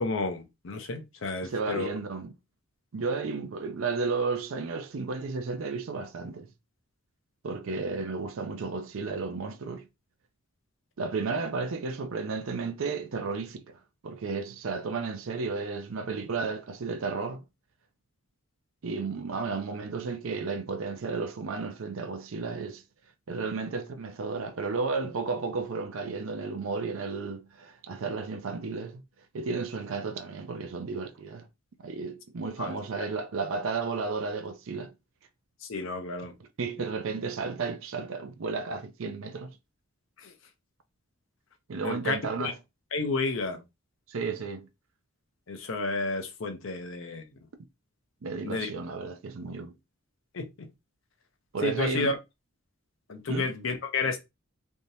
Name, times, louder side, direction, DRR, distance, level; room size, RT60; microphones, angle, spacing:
voice 1, 0.0-1.9 32.6-32.8 35.6-36.3 40.2-40.3 41.8-42.5 42.9-43.6 45.5-47.2 48.4-48.7 50.3-50.7 51.6-52.1 53.1-54.2, left 3 dB, 65° left, 0.6 m, -31 dB
voice 2, 1.4-2.3 2.9-6.5 7.4-9.9 11.0-17.4 18.8-22.8 23.3-29.0 29.3-31.5 31.8-34.9 36.4-39.6 41.7-42.6 44.1-44.7 48.2-49.8 51.5-52.1 53.3-53.5, right 4 dB, 70° right, 0.5 m, -33 dB
3.4 x 2.7 x 2.7 m
head